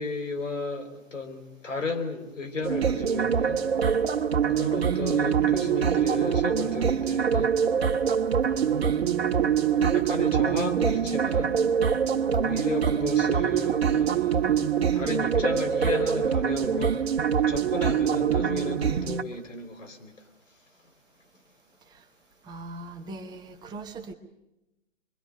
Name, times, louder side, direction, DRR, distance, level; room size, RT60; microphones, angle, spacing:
voice 1, 0.0-3.6 4.5-7.6 8.5-9.3 9.9-11.9 12.4-17.0 17.5-20.1, left 3 dB, 75° left, 6 dB, 4.9 m, -34 dB
sound 1, 2.6-19.2, right 7 dB, 55° right, 1.7 m, -24 dB
voice 2, 22.4-24.1, right 2 dB, 10° right, 3 dB, 1.0 m, -40 dB
25.0 x 23.5 x 6.4 m, 0.93 s
figure-of-eight pair, 135°, 38 cm